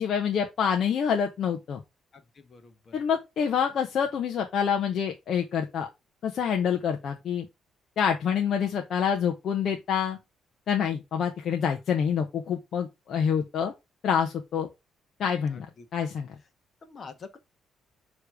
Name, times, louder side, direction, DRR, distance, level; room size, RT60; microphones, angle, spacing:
voice 1, 0.0-1.8 2.9-5.9 6.2-7.4 8.0-10.2 10.7-13.7 14.0-14.7 15.2-15.7 15.9-16.3, left 7 dB, 65° left, 1.0 m, -27 dB
voice 2, 2.1-2.9 15.5-15.9 16.8-17.4, left 4 dB, 45° left, 1.3 m, -47 dB
6.9 x 3.2 x 4.8 m
cardioid pair, 90°, 0 cm